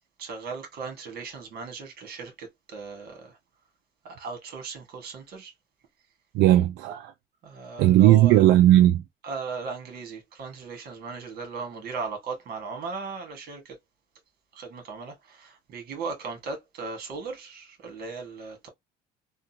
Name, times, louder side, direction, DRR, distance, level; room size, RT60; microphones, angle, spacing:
voice 1, 0.2-3.4 4.0-5.5 7.4-8.4 9.2-13.7 14.5-18.7, right 4 dB, 65° right, 1.6 m, -37 dB
voice 2, 6.3-7.1 7.8-9.0, right 13 dB, 85° right, 0.4 m, -17 dB
3.6 x 2.3 x 2.8 m
cardioid pair, 110°, 17 cm